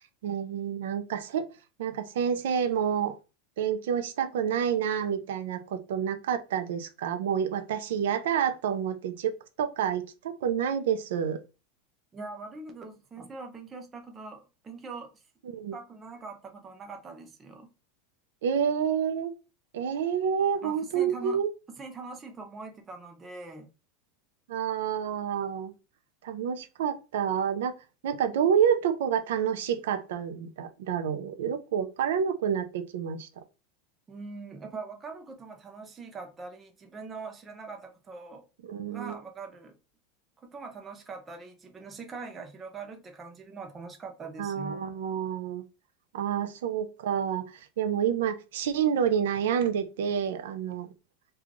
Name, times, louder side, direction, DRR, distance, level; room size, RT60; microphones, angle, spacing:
voice 1, 0.2-1.5 1.8-3.2 3.6-9.3 9.6-11.4 15.4-15.7 18.4-19.3 19.7-21.5 24.5-25.7 26.2-27.7 28.0-33.4 38.7-39.2 44.4-45.6 46.1-50.9, right 8 dB, 85° right, 0.5 m, -28 dB
voice 2, 12.1-15.2 15.7-17.7 20.6-21.4 21.7-23.7 34.1-38.5 38.9-39.8 40.4-44.8, right 4 dB, 15° right, 0.5 m, -42 dB
3.1 x 2.3 x 3.7 m
supercardioid pair, 175°, 0 cm